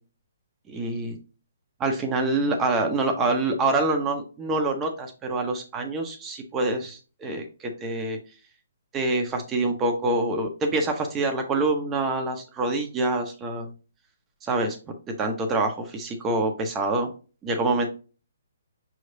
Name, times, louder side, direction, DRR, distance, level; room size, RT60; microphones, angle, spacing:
voice 1, 0.7-1.2 1.8-8.2 8.9-13.7 14.5-14.8 15.2-17.1 17.4-17.9, right 2 dB, 15° right, 3 dB, 0.7 m, -26 dB
5.5 x 3.1 x 2.6 m, 0.34 s
hypercardioid pair, 150°, 0 cm